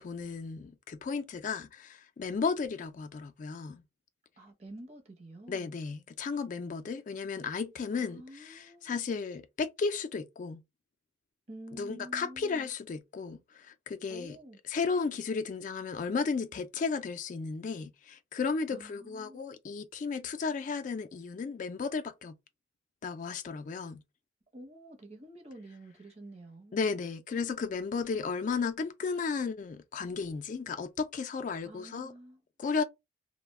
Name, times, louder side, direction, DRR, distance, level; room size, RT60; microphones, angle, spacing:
voice 1, 0.0-3.8 5.5-10.6 11.7-14.4 14.7-22.3 23.0-24.0 26.7-32.1 32.6-32.8, left 5 dB, 45° left, 0.3 m, -34 dB
voice 2, 4.4-5.7 7.9-9.0 11.5-12.7 14.1-14.6 18.7-19.5 24.5-26.9 31.6-32.4, right 1 dB, 35° right, 0.7 m, -49 dB
2.3 x 2.1 x 3.4 m
head